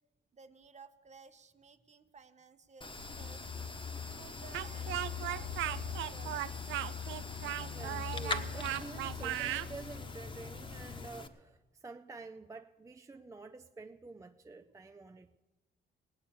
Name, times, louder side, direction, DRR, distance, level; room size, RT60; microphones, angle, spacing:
voice 1, 0.3-3.4 4.1-7.0, right 5 dB, 35° right, 0.9 m, -57 dB
sound 1, 2.8-11.3, left 2 dB, 25° left, 1.0 m, -44 dB
sound 2, 3.0-11.1, left 7 dB, 55° left, 0.7 m, -43 dB
Speech, 4.5-9.7, right 14 dB, 80° right, 0.4 m, -37 dB
voice 2, 7.7-15.4, right 3 dB, 15° right, 0.4 m, -49 dB
18.0 x 8.3 x 7.1 m
cardioid pair, 90°, 20 cm